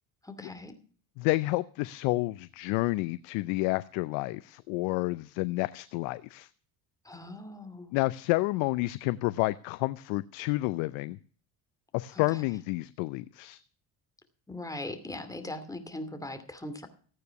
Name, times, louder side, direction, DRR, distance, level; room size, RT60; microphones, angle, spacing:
voice 1, 0.2-0.7 7.0-7.9 14.5-16.9, left 1 dB, 5° left, 7 dB, 2.6 m, -40 dB
voice 2, 1.2-6.5 7.9-11.2 11.9-13.6, left 21 dB, 70° left, 16 dB, 0.6 m, -30 dB
14.0 x 9.4 x 5.9 m, 0.44 s
hypercardioid pair, 70°, 49 cm